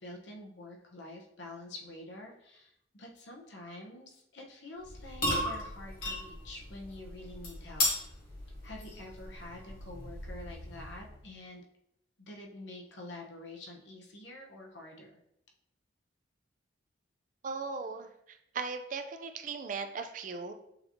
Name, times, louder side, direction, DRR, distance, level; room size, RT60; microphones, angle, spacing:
voice 1, 0.0-8.2 8.6-11.6 12.2-15.2, left 2 dB, 75° left, 1 dB, 0.9 m, -47 dB
sound 1, 4.8-11.2, left 1 dB, 55° left, 1.5 m, -36 dB
voice 2, 17.4-20.5, right 4 dB, 45° right, 7 dB, 0.4 m, -38 dB
6.6 x 2.7 x 2.9 m, 0.78 s
head